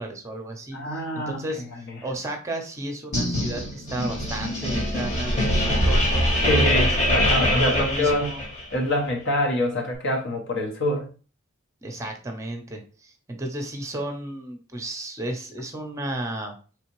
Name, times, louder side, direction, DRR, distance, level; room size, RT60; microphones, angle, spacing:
voice 1, 0.0-6.9 7.6-8.4 11.8-16.5, right 1 dB, 15° right, 4 dB, 0.8 m, -33 dB
voice 2, 0.7-1.4 1.9-2.0 6.5-8.3 8.7-11.1, left 1 dB, 60° left, 1 dB, 1.1 m, -25 dB
sound 1, 3.1-8.8, equal, 35° left, 1.3 m, -23 dB
4.2 x 3.3 x 3.1 m, 0.37 s
head